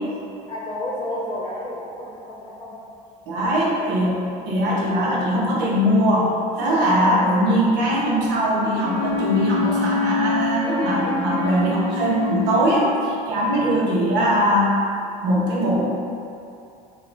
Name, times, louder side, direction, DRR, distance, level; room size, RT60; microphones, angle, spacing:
voice 1, 0.5-2.8 3.6-3.9, left 1 dB, 20° left, -5 dB, 1.0 m, -31 dB
voice 2, 3.3-4.2 4.5-14.7 15.2-15.9, equal, 65° right, -5 dB, 1.0 m, -21 dB
Wind instrument woodwind instrument, 8.8-13.2, left 3 dB, 65° left, 0.8 m, -26 dB
5.7 x 2.4 x 2.6 m, 2.6 s
supercardioid pair, 100°, 19 cm